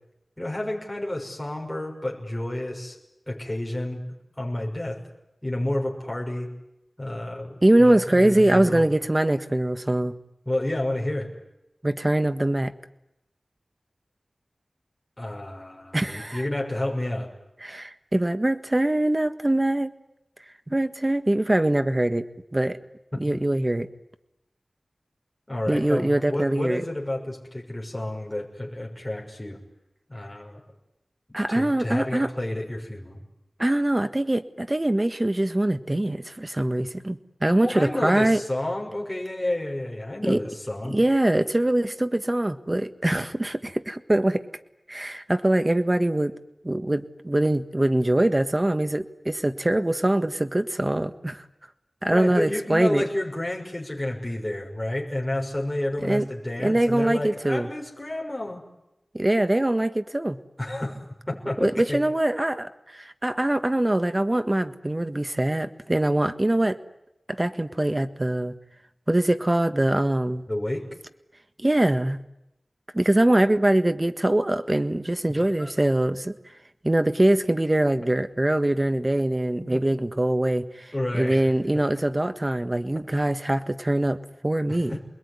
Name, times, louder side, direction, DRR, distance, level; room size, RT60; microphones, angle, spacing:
voice 1, 0.4-3.0 3.3-4.0 4.3-5.0 5.4-6.5 7.0-8.9 10.5-11.3 15.2-17.3 25.5-29.6 30.1-30.6 31.5-33.2 37.6-41.0 52.1-58.6 60.6-61.0 61.3-62.0 70.5-70.8 75.6-75.7 79.5-79.8 80.9-81.5 84.7-85.0, left 1 dB, 15° left, -1 dB, 6.1 m, -30 dB
voice 2, 7.6-10.1 11.8-12.7 15.9-16.4 17.6-19.9 20.7-22.2 22.5-22.8 23.2-23.9 25.7-26.8 31.3-32.3 33.6-38.4 40.2-40.4 40.9-44.4 44.9-46.3 46.6-51.4 52.0-53.0 56.0-56.2 56.6-57.7 59.1-60.4 61.6-66.8 67.3-68.5 69.1-70.4 71.6-72.2 72.9-76.3 76.8-85.0, right 1 dB, 25° right, 9 dB, 1.5 m, -23 dB
28.5 x 21.0 x 9.8 m, 0.88 s
wide cardioid pair, 75°, 0 cm